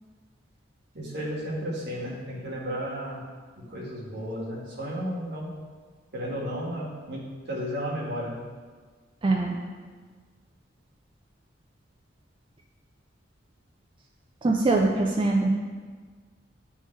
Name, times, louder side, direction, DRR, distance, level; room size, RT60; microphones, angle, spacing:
voice 1, 1.0-3.2 3.6-5.6 6.1-8.4, equal, 60° right, -4 dB, 1.6 m, -33 dB
voice 2, 9.2-9.6 14.4-15.5, right 2 dB, 25° right, -1 dB, 0.4 m, -23 dB
10.5 x 3.6 x 3.2 m, 1.5 s
head